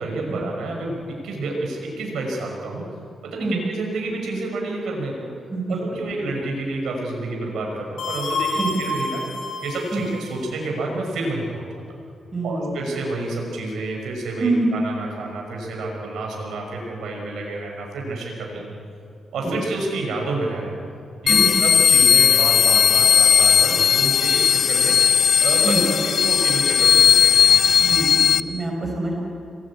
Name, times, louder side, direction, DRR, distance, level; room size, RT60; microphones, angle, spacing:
voice 1, 0.0-2.8 3.2-5.3 5.7-9.2 9.6-11.8 12.4-18.7 19.3-20.8 21.2-25.1 25.4-27.5, right 2 dB, 85° right, 0 dB, 5.4 m, -29 dB
sound 1, 8.0-10.3, left 2 dB, 80° left, 7.6 m, -28 dB
voice 2, 12.3-12.7 14.4-14.7 19.4-19.6 21.3-21.5 25.6-25.9 27.8-29.2, right 2 dB, 30° right, 1 dB, 5.8 m, -25 dB
sound 2, 21.3-28.4, left 7 dB, 60° left, 0.6 m, -16 dB
26.5 x 20.0 x 8.5 m, 2.5 s
cardioid pair, 90°, 0 cm